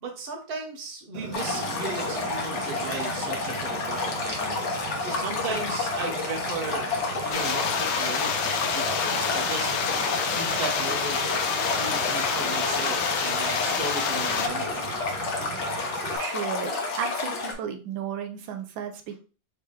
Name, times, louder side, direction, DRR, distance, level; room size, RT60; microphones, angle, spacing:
voice 1, 0.0-4.7 5.0-6.9 7.2-8.3 8.7-9.7 10.3-11.2 11.8-14.9, right 3 dB, 40° right, 2 dB, 1.0 m, -36 dB
Fire, 1.1-16.2, right 5 dB, 65° right, 1.2 m, -38 dB
Stream, 1.3-17.5, left 3 dB, 45° left, 1.0 m, -30 dB
sound 1, 7.3-14.5, left 6 dB, 85° left, 1.4 m, -28 dB
voice 2, 16.2-19.2, right 8 dB, 80° right, 6 dB, 1.5 m, -34 dB
4.6 x 2.9 x 3.3 m, 0.36 s
omnidirectional pair, 2.1 m